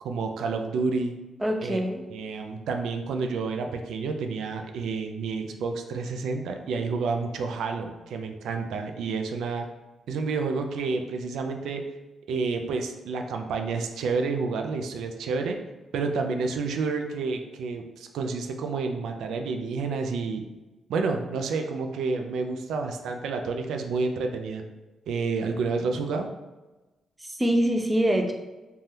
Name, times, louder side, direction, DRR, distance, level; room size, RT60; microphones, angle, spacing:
voice 1, 0.0-1.2 1.6-1.8 2.1-9.7 10.1-11.8 12.3-15.6 15.9-20.5 20.9-24.6 25.1-26.3, right 4 dB, 90° right, 4 dB, 0.3 m, -29 dB
voice 2, 1.4-2.0 27.2-28.3, equal, 10° right, 3 dB, 0.3 m, -24 dB
3.3 x 2.2 x 2.7 m, 1.1 s
cardioid pair, 125°, 0 cm